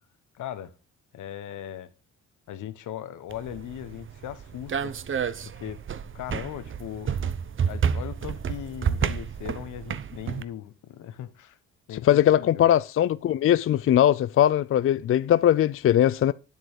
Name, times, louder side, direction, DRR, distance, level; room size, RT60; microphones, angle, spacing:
voice 1, 0.3-0.7 1.1-1.9 2.5-4.9 5.4-5.8 6.1-7.3 7.7-11.6 11.9-12.7, left 11 dB, 80° left, 1.3 m, -38 dB
sound 1, 3.3-10.4, right 7 dB, 40° right, 0.9 m, -30 dB
voice 2, 12.0-16.3, left 11 dB, 45° left, 0.4 m, -20 dB
10.0 x 7.9 x 4.9 m
cardioid pair, 90°, 30 cm